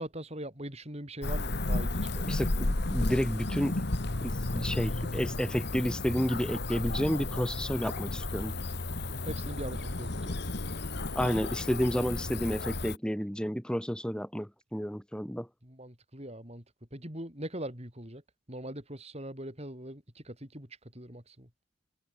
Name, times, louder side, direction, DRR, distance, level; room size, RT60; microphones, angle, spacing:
voice 1, 0.0-2.4 9.2-10.4 15.6-16.6 16.9-18.2 18.5-21.5, right 1 dB, 30° right, 5.8 m, -41 dB
Cricket / Motor vehicle (road), 1.2-13.0, left 2 dB, 50° left, 1.4 m, -33 dB
voice 2, 2.3-3.8 4.2-8.5 11.1-15.5, equal, 5° left, 4.6 m, -31 dB
head